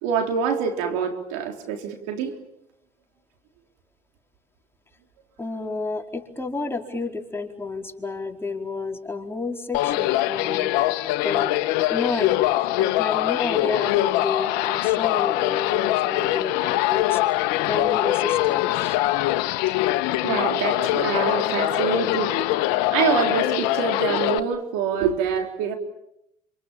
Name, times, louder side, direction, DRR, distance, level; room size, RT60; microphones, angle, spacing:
voice 1, 0.0-2.3 20.2-22.3 22.9-25.8, right 7 dB, 85° right, 4 dB, 4.0 m, -25 dB
voice 2, 5.4-10.7 11.2-11.5 11.9-12.5 12.8-17.2 17.7-19.0, left 3 dB, 15° left, 1 dB, 4.7 m, -30 dB
sound 1, 9.7-24.4, left 16 dB, 80° left, 1.3 m, -23 dB
28.0 x 27.0 x 7.4 m, 0.81 s
supercardioid pair, 75°, 16 cm